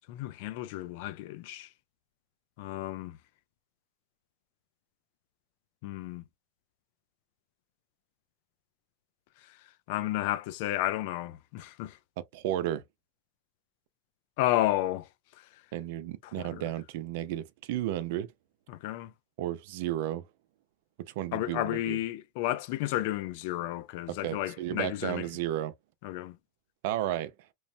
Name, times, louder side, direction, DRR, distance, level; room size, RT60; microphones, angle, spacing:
voice 1, 0.1-1.7 2.6-3.2 5.8-6.2 9.9-12.0 14.4-15.1 16.4-16.6 18.7-19.1 21.3-25.2 26.0-26.4, left 15 dB, 65° left, 0.4 m, -32 dB
voice 2, 12.2-12.8 15.7-18.3 19.4-20.3 21.1-22.0 24.1-25.7 26.8-27.3, right 13 dB, 65° right, 0.4 m, -33 dB
3.0 x 2.0 x 2.5 m
hypercardioid pair, 115°, 0 cm